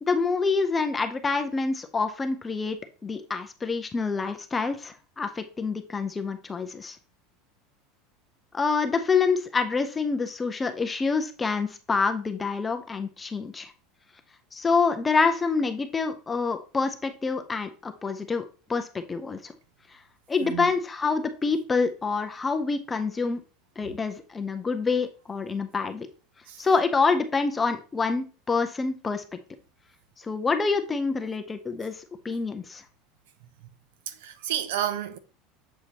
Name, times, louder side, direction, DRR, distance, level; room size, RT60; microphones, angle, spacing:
voice 1, 0.0-7.0 8.5-13.7 14.5-18.4 18.7-19.5 19.9-20.0 20.3-23.4 23.8-26.1 26.6-29.4 30.2-32.8, left 4 dB, 15° left, 0.6 m, -27 dB
voice 2, 20.4-20.7 26.5-26.6 34.1-35.2, right 11 dB, 80° right, 0.8 m, -31 dB
7.4 x 4.8 x 2.8 m
supercardioid pair, 165°, 0 cm